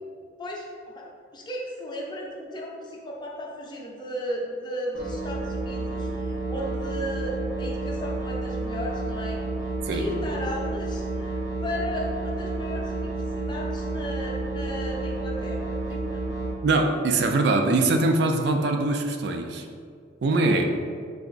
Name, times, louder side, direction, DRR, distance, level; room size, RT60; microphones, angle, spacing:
voice 1, 1.0-9.4 9.9-16.2, equal, 25° left, -3 dB, 0.6 m, -35 dB
sound 1, 4.9-16.5, right 2 dB, 90° right, 1.2 m, -30 dB
voice 2, 16.6-19.7 20.2-20.7, right 2 dB, 60° right, 4 dB, 0.3 m, -22 dB
3.4 x 2.9 x 3.9 m, 2.1 s
head